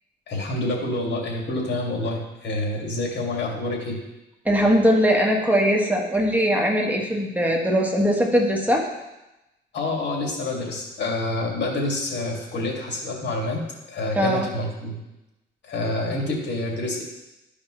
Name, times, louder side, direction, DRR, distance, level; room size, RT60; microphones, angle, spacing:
voice 1, 0.3-4.0 9.7-13.6 13.9-15.0 15.6-17.0, left 2 dB, 60° left, -1 dB, 2.4 m, -27 dB
voice 2, 4.4-8.8 14.1-14.5, equal, 10° right, -1 dB, 1.4 m, -20 dB
12.5 x 5.0 x 3.3 m, 0.97 s
cardioid pair, 90°, 20 cm